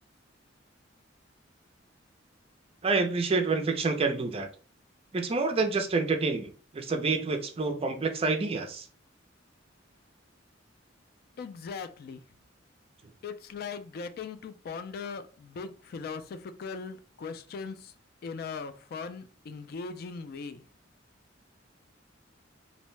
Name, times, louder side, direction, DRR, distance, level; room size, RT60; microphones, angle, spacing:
voice 1, 2.8-4.5 5.1-8.9, right 3 dB, 30° right, 6 dB, 0.4 m, -28 dB
voice 2, 11.4-12.2 13.2-17.9 18.2-20.6, left 5 dB, 55° left, 10 dB, 0.3 m, -39 dB
2.6 x 2.1 x 3.1 m, 0.37 s
head